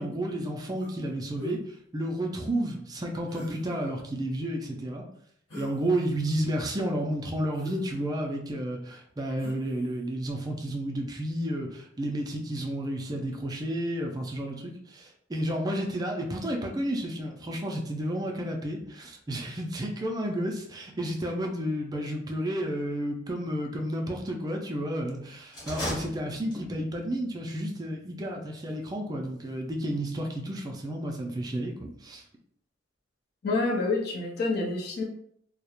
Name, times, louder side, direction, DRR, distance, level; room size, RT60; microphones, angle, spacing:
voice 1, 0.0-5.0 5.6-32.2, right 1 dB, 20° right, 2 dB, 0.3 m, -31 dB
sound 1, 0.8-1.0 1.4-1.6 3.3-3.9 5.5-5.8 6.2-6.8 7.5-8.4 9.4-9.9, left 3 dB, 75° left, 1.0 m, -41 dB
sound 2, 25.5-26.9, equal, 20° left, 0.9 m, -35 dB
voice 2, 33.4-35.0, left 3 dB, 60° left, -1 dB, 0.5 m, -27 dB
2.3 x 2.0 x 2.9 m, 0.68 s
head